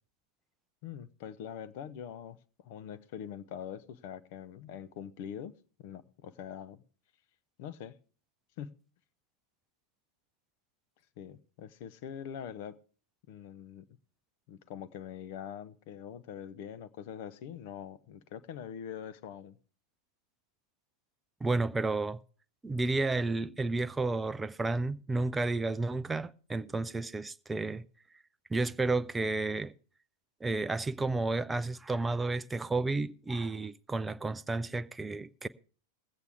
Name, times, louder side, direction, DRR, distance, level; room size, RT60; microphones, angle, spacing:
voice 1, 0.8-6.8 7.6-7.9 8.6-8.7 11.2-12.8 13.3-13.9 14.5-19.6, left 9 dB, 50° left, 0.7 m, -43 dB
voice 2, 21.4-22.2 22.6-27.9 28.5-29.7 30.4-35.5, right 3 dB, 10° right, 0.4 m, -31 dB
21.0 x 8.2 x 3.4 m
figure-of-eight pair, 90°, 0 cm